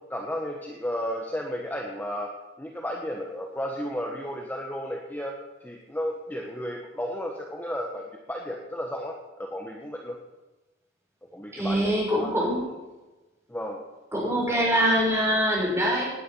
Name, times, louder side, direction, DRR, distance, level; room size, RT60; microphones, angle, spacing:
voice 1, 0.1-2.3 2.6-5.3 5.6-10.2 11.3-12.3 13.5-13.8, equal, 10° left, 0 dB, 1.4 m, -33 dB
voice 2, 11.5-12.6 14.1-16.0, equal, 15° right, -3 dB, 6.0 m, -24 dB
18.5 x 10.0 x 5.7 m, 1.1 s
head